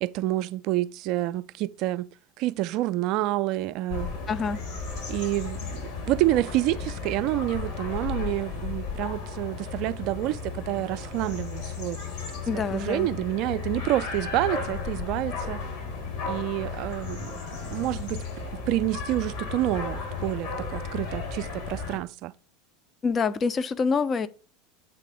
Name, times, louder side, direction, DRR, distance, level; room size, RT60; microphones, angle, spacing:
voice 1, 0.0-2.1 2.4-4.1 5.1-5.8 6.1-12.0 12.7-15.6 16.2-17.4 17.7-18.2 18.7-22.3, right 16 dB, 50° right, 0.4 m, -28 dB
sound 1, 3.9-22.0, left 4 dB, 60° left, 3.5 m, -34 dB
voice 2, 4.3-4.6 12.5-13.1 23.0-24.3, left 5 dB, 30° left, 0.5 m, -26 dB
8.3 x 3.3 x 4.9 m
figure-of-eight pair, 80°, 0 cm